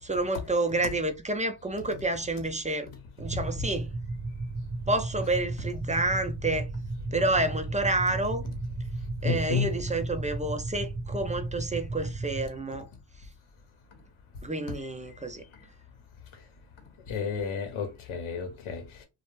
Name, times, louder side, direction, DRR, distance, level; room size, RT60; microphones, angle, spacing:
voice 1, 0.0-2.9 3.2-3.9 4.9-6.7 7.1-8.4 9.2-12.9 13.2-13.3 14.4-15.4, right 2 dB, 15° right, 0.4 m, -29 dB
sound 1, 3.2-12.5, right 2 dB, 40° right, 0.7 m, -34 dB
voice 2, 9.2-9.7 17.1-19.0, left 6 dB, 80° left, 0.8 m, -31 dB
2.4 x 2.1 x 3.0 m
cardioid pair, 70°, 49 cm